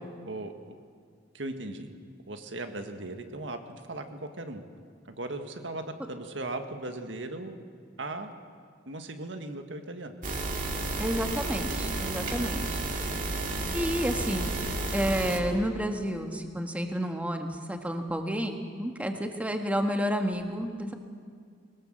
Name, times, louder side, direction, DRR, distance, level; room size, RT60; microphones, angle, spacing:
voice 1, 0.2-0.8 1.3-1.9 2.3-4.6 5.0-7.6 8.0-8.3 8.8-10.1 12.1-12.8, right 2 dB, 80° right, 6 dB, 1.8 m, -38 dB
sound 1, 10.2-15.4, right 2 dB, 45° right, 2.3 m, -32 dB
voice 2, 11.0-12.8 13.7-14.5 14.9-20.9, equal, 10° right, 4 dB, 1.6 m, -30 dB
22.0 x 20.0 x 7.7 m, 2.1 s
head